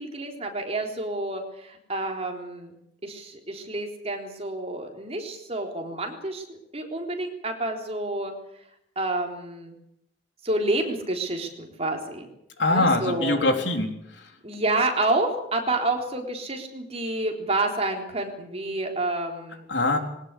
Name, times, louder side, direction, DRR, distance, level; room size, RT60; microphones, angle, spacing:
voice 1, 0.0-2.7 3.0-8.3 9.0-9.8 10.4-12.2 12.7-13.4 14.4-19.7, right 2 dB, 35° right, 2 dB, 3.8 m, -29 dB
voice 2, 12.6-13.9 19.7-20.0, left 2 dB, 75° left, 5 dB, 3.7 m, -22 dB
21.5 x 18.5 x 8.4 m, 0.79 s
head